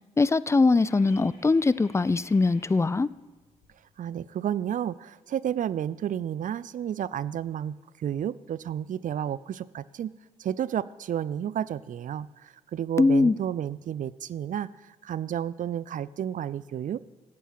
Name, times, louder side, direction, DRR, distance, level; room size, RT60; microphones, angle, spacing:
voice 1, 0.2-3.1 13.0-13.4, left 3 dB, 15° left, 20 dB, 0.3 m, -21 dB
sound 1, 0.8-3.9 4.3-8.5, left 3 dB, 80° left, 2.6 m, -54 dB
voice 2, 4.0-10.1 10.4-17.0, right 10 dB, 55° right, 19 dB, 0.4 m, -31 dB
8.4 x 7.5 x 6.4 m, 1.2 s
hypercardioid pair, 40°, 16 cm